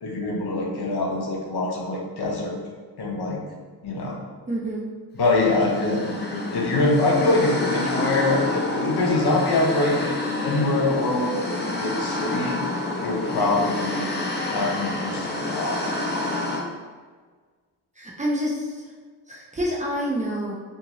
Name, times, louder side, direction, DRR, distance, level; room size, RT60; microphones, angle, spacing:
voice 1, 0.0-2.5 3.0-3.4 3.8-4.2 5.1-12.6 13.0-14.1 14.5-15.8, left 2 dB, 65° left, -1 dB, 0.8 m, -24 dB
voice 2, 4.5-4.9 18.0-18.7 19.3-20.5, equal, 20° right, -3 dB, 0.5 m, -27 dB
sound 1, 5.3-16.6, left 2 dB, 25° left, 0.6 m, -28 dB
2.6 x 2.5 x 2.9 m, 1.5 s
cardioid pair, 75°, 40 cm